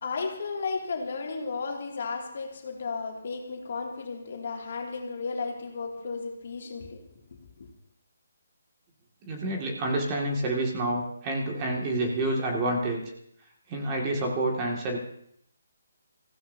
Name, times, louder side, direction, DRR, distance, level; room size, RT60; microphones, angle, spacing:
voice 1, 0.0-7.2 7.6-7.7, left 4 dB, 55° left, 2.5 m, -34 dB
voice 2, 9.3-13.0 13.7-15.0, right 1 dB, 20° right, 2.2 m, -28 dB
24.5 x 15.5 x 2.8 m
hypercardioid pair, 165°, 0 cm